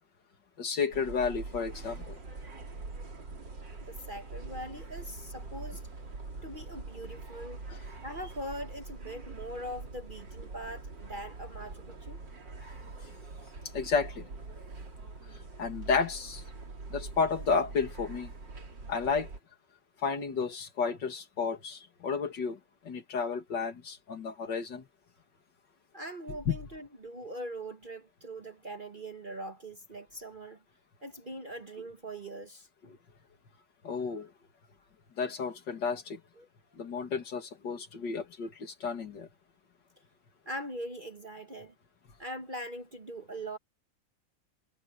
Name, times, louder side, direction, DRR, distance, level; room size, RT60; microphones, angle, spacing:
voice 1, 0.6-2.2 7.7-7.8 13.7-14.3 15.6-16.4 16.9-18.3 18.9-19.3 20.0-22.6 22.8-24.8 26.5-26.6 32.8-33.0 33.8-34.3 35.2-36.2 36.8-39.3, left 5 dB, 70° left, 2.6 m, -32 dB
sound 1, 0.9-19.4, right 3 dB, 70° right, 4.0 m, -44 dB
voice 2, 3.8-5.8 6.4-7.6 8.0-12.2 25.9-30.6 31.0-32.7 36.4-36.5 40.4-41.7 42.2-43.6, right 1 dB, 30° right, 1.2 m, -41 dB
omnidirectional pair, 2.0 m